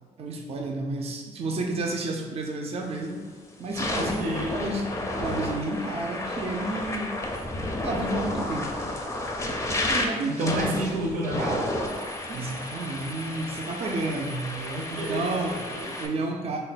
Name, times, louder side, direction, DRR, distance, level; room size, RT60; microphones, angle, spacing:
voice 1, 0.2-3.2 3.6-7.1 7.8-8.7 9.9-10.8 11.1-11.5 12.3-14.5 14.9-15.6 16.0-16.6, right 2 dB, 45° right, 1 dB, 0.4 m, -31 dB
sound 1, 2.9-3.1 3.6-16.1, left 1 dB, 20° left, 0.5 m, -32 dB
voice 2, 3.9-4.6 10.2-11.7 14.5-15.9, right 1 dB, 85° right, 0 dB, 0.6 m, -31 dB
3.7 x 2.1 x 4.0 m, 1.4 s
cardioid pair, 100°, 14 cm